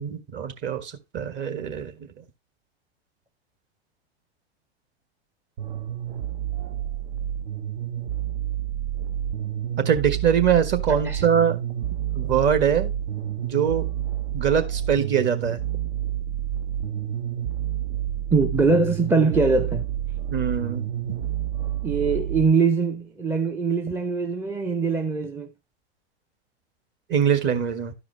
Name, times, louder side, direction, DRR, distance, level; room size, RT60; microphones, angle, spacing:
voice 1, 0.0-1.9 9.8-11.6 12.1-12.9 13.4-13.8 14.3-15.6 20.3-20.9 27.1-27.9, right 8 dB, 35° right, 1.5 m, -23 dB
sound 1, 5.6-22.5, right 11 dB, 70° right, 1.1 m, -29 dB
voice 2, 18.3-19.9 21.8-25.5, right 4 dB, 5° right, 0.5 m, -22 dB
12.0 x 4.9 x 3.2 m
hypercardioid pair, 110°, 33 cm